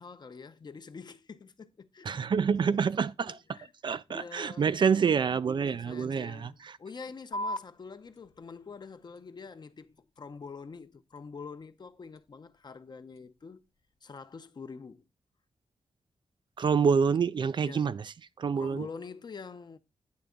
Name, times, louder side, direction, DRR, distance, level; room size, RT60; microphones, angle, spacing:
voice 1, 0.0-2.1 2.7-2.8 3.2-5.0 5.7-13.6 14.0-15.1 17.6-17.9 18.6-19.8, left 5 dB, 45° left, 0.7 m, -46 dB
voice 2, 2.1-3.4 3.8-6.7 16.6-18.0 18.4-18.9, right 6 dB, 50° right, 0.3 m, -27 dB
sound 1, 7.3-14.3, equal, 80° left, 1.0 m, -45 dB
9.4 x 3.4 x 5.0 m
cardioid pair, 80°, 10 cm